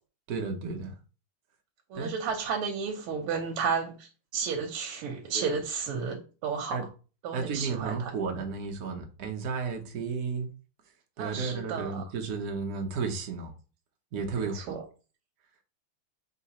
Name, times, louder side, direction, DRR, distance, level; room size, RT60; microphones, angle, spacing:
voice 1, 0.3-0.9 1.9-2.1 5.3-5.6 6.7-6.8 7.3-10.5 11.2-13.5 14.1-14.8, right 5 dB, 60° right, 1.0 m, -33 dB
voice 2, 1.9-6.8 7.2-8.1 11.2-12.0 14.4-14.8, right 6 dB, 85° right, 1.6 m, -32 dB
4.0 x 3.9 x 2.8 m
omnidirectional pair, 2.4 m